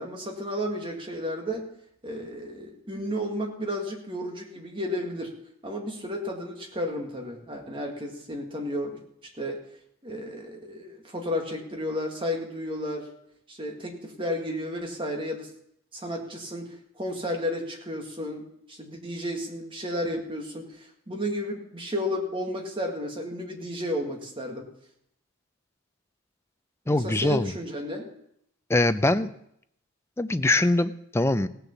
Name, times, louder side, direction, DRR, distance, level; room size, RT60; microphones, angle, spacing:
voice 1, 0.0-1.7 2.0-5.4 5.6-9.6 10.0-13.1 13.5-15.5 15.9-24.7 26.9-28.1, equal, 25° right, 1 dB, 1.9 m, -33 dB
voice 2, 26.9-27.5 28.7-29.3 30.2-31.5, left 2 dB, 10° left, 11 dB, 0.4 m, -23 dB
16.5 x 6.9 x 7.2 m, 0.74 s
head